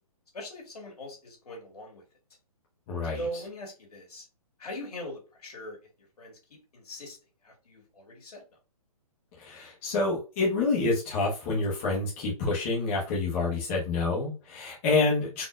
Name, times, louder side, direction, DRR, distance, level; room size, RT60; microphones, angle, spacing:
voice 1, 0.3-2.0 3.1-4.3 4.6-5.8 6.2-7.2 7.4-8.4, equal, 85° left, 0 dB, 2.0 m, -41 dB
voice 2, 2.9-3.2 9.4-15.4, left 3 dB, 20° left, -4 dB, 1.0 m, -28 dB
4.3 x 2.8 x 2.4 m, 0.32 s
hypercardioid pair, 165°, 19 cm